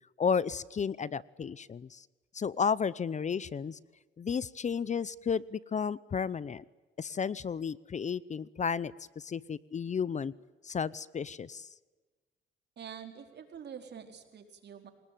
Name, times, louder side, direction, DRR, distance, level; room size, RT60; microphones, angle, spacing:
voice 1, 0.2-2.1 2.3-3.8 4.2-6.6 7.0-10.3 10.6-11.7, left 6 dB, 35° left, 20 dB, 0.7 m, -33 dB
voice 2, 12.8-14.9, right 8 dB, 60° right, 5 dB, 4.5 m, -46 dB
28.0 x 19.5 x 9.3 m, 1.2 s
cardioid pair, 90°, 20 cm